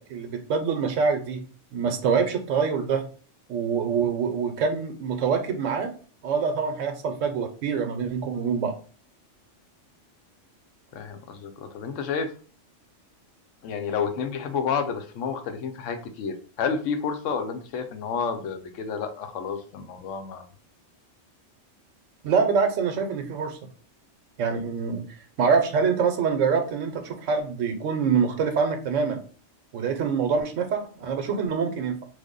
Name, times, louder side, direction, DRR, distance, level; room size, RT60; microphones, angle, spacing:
voice 1, 0.0-1.4 1.7-3.1 3.5-5.9 6.2-8.7 22.2-23.6 24.4-25.1 25.4-29.2 29.7-32.0, right 5 dB, 90° right, 7 dB, 1.0 m, -25 dB
voice 2, 10.9-12.3 13.6-20.4, left 6 dB, 90° left, 7 dB, 1.0 m, -30 dB
3.3 x 2.1 x 3.6 m, 0.41 s
omnidirectional pair, 1.3 m